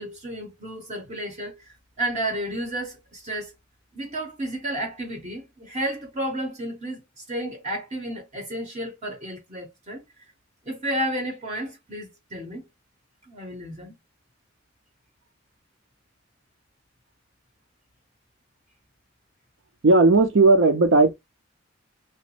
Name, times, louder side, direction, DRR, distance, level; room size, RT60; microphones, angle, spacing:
voice 1, 0.0-3.5 3.9-10.0 10.7-12.6 13.3-13.9, right 1 dB, 35° right, 0.7 m, -32 dB
voice 2, 19.8-21.1, right 3 dB, 70° right, 0.5 m, -16 dB
2.9 x 2.1 x 2.9 m
head